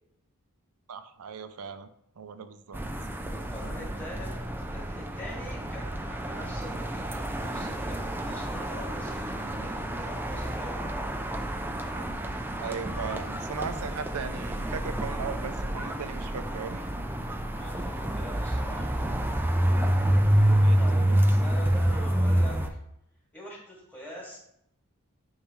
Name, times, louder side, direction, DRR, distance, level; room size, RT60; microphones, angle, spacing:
voice 1, 0.9-1.9 2.2-2.8 11.9-12.0 12.6-16.9 20.6-21.2, right 6 dB, 80° right, 11 dB, 0.5 m, -38 dB
sound 1, 2.7-22.7, right 1 dB, 10° right, 0.4 m, -28 dB
voice 2, 3.3-4.3 4.7-10.8 17.5-18.9 20.8-22.6 23.3-24.4, equal, 10° left, -6 dB, 2.4 m, -44 dB
10.0 x 3.7 x 3.1 m, 0.77 s
head